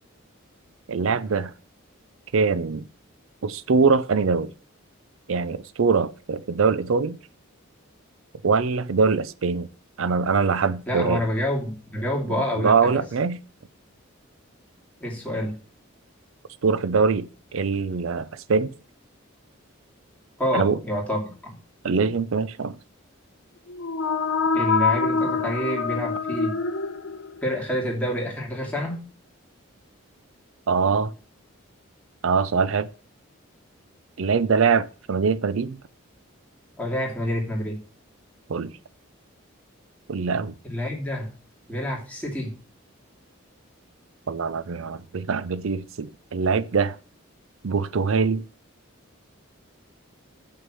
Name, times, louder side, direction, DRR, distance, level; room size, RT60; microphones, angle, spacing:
voice 1, 0.9-1.5 2.3-2.9 3.4-4.5 5.3-7.2 8.4-9.7 10.0-11.2 12.6-13.4 16.6-18.7 20.5-20.8 21.8-22.8 30.7-31.1 32.2-32.9 34.2-35.8 38.5-38.7 40.1-40.5 44.3-47.0 47.6-48.4, right 5 dB, 75° right, 0.5 m, -23 dB
voice 2, 10.9-13.0 15.0-15.5 20.4-21.6 24.5-26.5 27.4-29.0 36.8-37.8 40.6-41.3 41.7-42.5, equal, 5° left, 2.7 m, -28 dB
sound 1, 23.7-27.5, left 5 dB, 80° left, 1.3 m, -25 dB
7.9 x 6.3 x 7.6 m
head